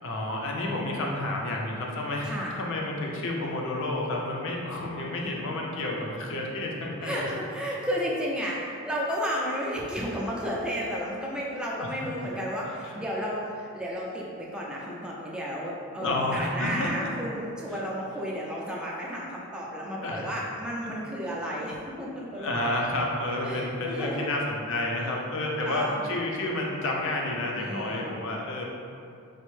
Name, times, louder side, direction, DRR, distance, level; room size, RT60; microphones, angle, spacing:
voice 1, 0.0-7.2 12.2-12.3 12.8-13.0 16.0-17.1 20.0-20.4 20.8-20.9 22.4-28.7, left 1 dB, 60° left, -1 dB, 0.5 m, -30 dB
voice 2, 7.0-22.5 23.4-24.3 25.0-25.1 25.6-26.1 27.5-28.1, equal, 5° right, -5 dB, 0.4 m, -32 dB
4.2 x 2.0 x 3.1 m, 2.4 s
head